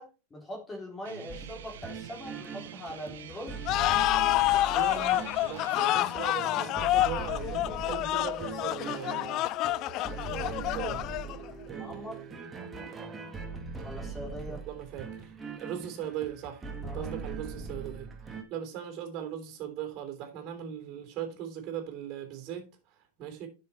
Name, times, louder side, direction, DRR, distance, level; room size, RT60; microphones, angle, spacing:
voice 1, 0.0-3.6 11.2-12.2 13.8-14.6 16.8-17.1, equal, 15° left, 3.5 m, -42 dB
Guitar, 1.0-5.9, right 8 dB, 75° right, 1.2 m, -47 dB
sound 1, 1.3-18.4, right 4 dB, 15° right, 1.9 m, -41 dB
sound 2, 3.7-11.5, left 16 dB, 40° left, 0.4 m, -28 dB
voice 2, 4.7-9.7 10.2-11.0 11.6-12.3 14.5-23.5, right 9 dB, 40° right, 3.4 m, -39 dB
10.5 x 6.1 x 4.4 m
hypercardioid pair, 125°, 0 cm